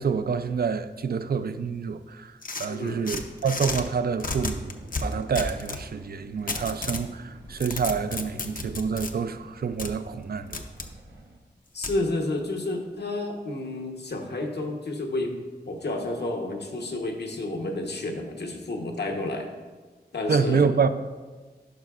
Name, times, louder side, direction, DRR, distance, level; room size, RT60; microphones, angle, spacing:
voice 1, 0.0-10.6 20.3-20.9, right 6 dB, 60° right, 0.4 m, -27 dB
sound 1, 2.4-3.8 4.2-5.8 6.5-7.1 7.5-9.1 9.8-9.9 10.5-10.9 11.8-12.0, left 3 dB, 50° left, 0.6 m, -32 dB
voice 2, 2.7-3.0 11.7-15.4 15.6-19.5 20.1-20.9, left 2 dB, 70° left, 1.0 m, -30 dB
sound 2, 4.4-11.4, right 2 dB, 80° right, 0.9 m, -49 dB
11.5 x 5.4 x 2.4 m
wide cardioid pair, 55°, 18 cm